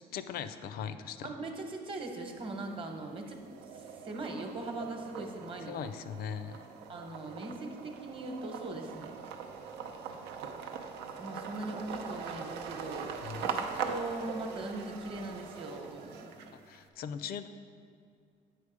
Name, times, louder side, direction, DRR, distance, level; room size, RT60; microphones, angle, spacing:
voice 1, 0.1-1.3 5.7-6.6 13.2-13.5 16.7-17.5, left 7 dB, 65° left, 12 dB, 0.5 m, -39 dB
voice 2, 1.2-3.4 3.7-5.8 6.9-9.2 11.2-13.1 13.4-16.3, right 2 dB, 30° right, 3 dB, 1.0 m, -40 dB
sound 1, 2.2-2.9 3.3-16.8, right 6 dB, 90° right, 0.6 m, -41 dB
8.4 x 4.4 x 4.9 m, 2.2 s
cardioid pair, 110°, 17 cm